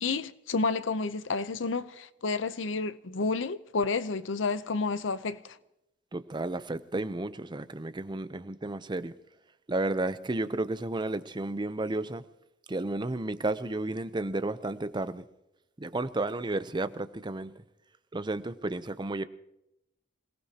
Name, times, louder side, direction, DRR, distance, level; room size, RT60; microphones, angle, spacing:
voice 1, 0.0-5.4, left 4 dB, 85° left, 0.7 m, -30 dB
voice 2, 6.1-9.1 9.7-12.2 12.7-15.2 15.8-17.5 18.1-19.2, right 2 dB, 25° right, 0.7 m, -32 dB
27.0 x 18.5 x 2.9 m
head